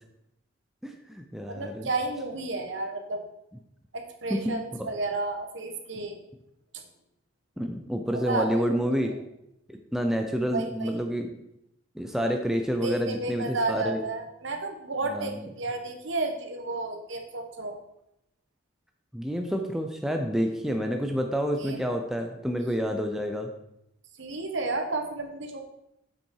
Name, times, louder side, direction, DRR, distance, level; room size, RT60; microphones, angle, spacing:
voice 1, 0.8-1.9 4.3-4.6 7.6-9.1 9.7-11.3 12.0-14.0 15.1-15.5 19.1-23.5, equal, ahead, 3 dB, 0.6 m, -29 dB
voice 2, 1.5-3.2 3.9-6.2 8.1-8.7 8.9-9.1 10.5-11.0 12.8-17.8 21.6-22.0 22.3-22.4 24.2-25.6, right 3 dB, 60° right, 5 dB, 1.2 m, -32 dB
7.4 x 5.9 x 4.7 m, 0.82 s
head